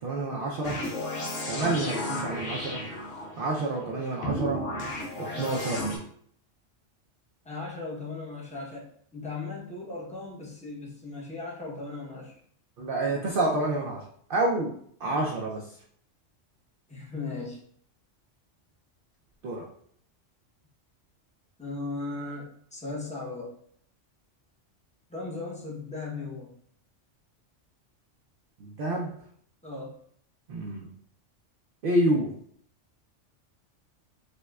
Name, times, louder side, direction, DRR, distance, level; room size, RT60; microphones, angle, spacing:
voice 1, 0.0-0.8 1.5-2.9 3.4-4.6 5.2-5.9 12.8-14.0 14.3-15.8 19.4-19.7 28.6-29.1 30.5-30.9 31.8-32.3, right 2 dB, 60° right, -1 dB, 0.6 m, -28 dB
sound 1, 0.6-3.5 4.2-6.0, left 1 dB, 85° left, 1.2 m, -33 dB
voice 2, 7.4-12.3 15.0-15.2 16.9-17.6 21.6-23.5 25.1-26.5 29.6-30.0, left 3 dB, 5° left, -4 dB, 0.7 m, -37 dB
5.2 x 2.2 x 2.3 m, 0.62 s
omnidirectional pair, 1.3 m